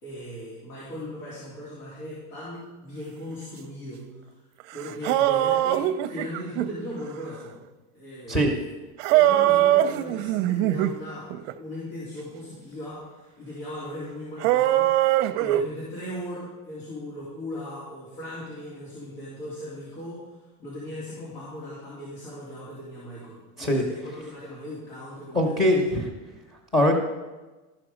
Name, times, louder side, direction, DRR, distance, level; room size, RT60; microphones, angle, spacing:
voice 1, 0.0-4.3 4.7-7.6 7.9-8.5 9.1-25.8, left 1 dB, 85° left, -8 dB, 3.7 m, -38 dB
sound 1, 4.6-4.7 4.9-6.7 9.0-11.0 11.3-11.5 14.4-15.6, right 13 dB, 60° right, 0.6 m, -21 dB
voice 2, 25.3-26.1 26.7-26.9, left 1 dB, 10° left, 3 dB, 1.1 m, -21 dB
13.5 x 5.9 x 5.1 m, 1.2 s
supercardioid pair, 155°, 43 cm